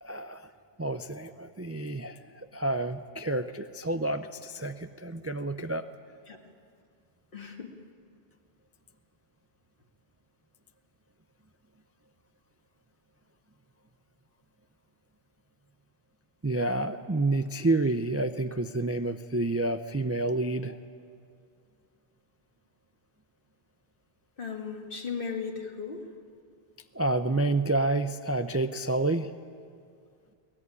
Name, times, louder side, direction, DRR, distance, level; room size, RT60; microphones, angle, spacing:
voice 1, 0.0-0.5 0.8-5.8 16.4-20.8 26.9-29.3, right 2 dB, 20° right, 9 dB, 0.4 m, -29 dB
voice 2, 7.3-7.7 24.4-26.1, left 5 dB, 60° left, 3 dB, 2.1 m, -36 dB
22.0 x 19.0 x 9.7 m, 2.3 s
omnidirectional pair, 1.1 m